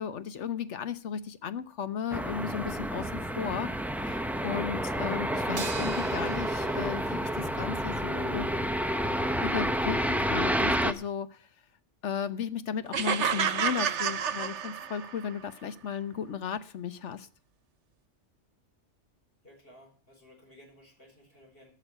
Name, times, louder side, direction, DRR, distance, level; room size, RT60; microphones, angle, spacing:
voice 1, 0.0-3.7 4.0-8.5 9.4-11.4 12.0-17.3, left 7 dB, 80° left, 13 dB, 1.2 m, -35 dB
sound 1, 2.1-10.9, equal, ahead, 0.6 m, -30 dB
sound 2, 5.6-8.1, right 5 dB, 55° right, 1.4 m, -43 dB
sound 3, 12.9-15.2, right 7 dB, 75° right, 1.2 m, -29 dB
voice 2, 19.4-21.7, left 1 dB, 55° left, 0 dB, 5.0 m, -56 dB
12.5 x 6.6 x 8.7 m, 0.41 s
omnidirectional pair, 1.2 m